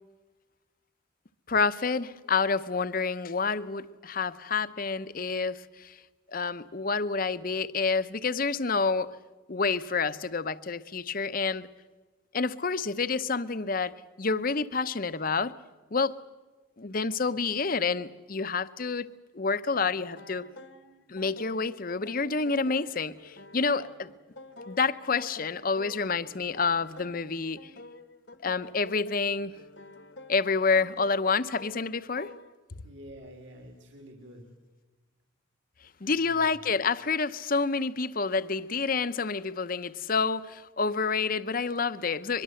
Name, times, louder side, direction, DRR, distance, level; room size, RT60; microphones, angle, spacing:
voice 1, 1.5-6.0 6.3-9.2 9.5-11.7 12.3-15.5 15.9-16.2 16.8-19.1 19.3-20.4 21.1-24.1 24.7-27.7 28.4-29.5 30.3-32.3 36.0-42.4, left 4 dB, 45° left, 0.7 m, -28 dB
sound 1, 19.8-32.6, left 2 dB, 60° left, 1.2 m, -49 dB
voice 2, 32.8-34.4 36.0-36.6, equal, 65° right, 3.0 m, -48 dB
23.5 x 22.5 x 7.7 m
head